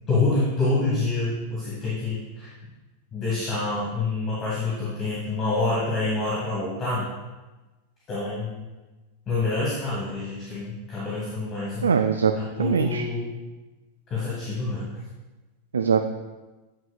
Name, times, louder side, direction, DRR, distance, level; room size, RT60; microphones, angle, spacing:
voice 1, 0.1-2.5 3.1-7.1 8.1-8.7 9.3-12.0 12.3-13.3 14.1-14.9, left 3 dB, 30° left, -8 dB, 1.9 m, -27 dB
voice 2, 11.8-12.3 12.6-13.0 15.7-16.0, right 6 dB, 70° right, 6 dB, 0.3 m, -21 dB
9.6 x 5.6 x 2.4 m, 1.2 s
figure-of-eight pair, 90°, 0 cm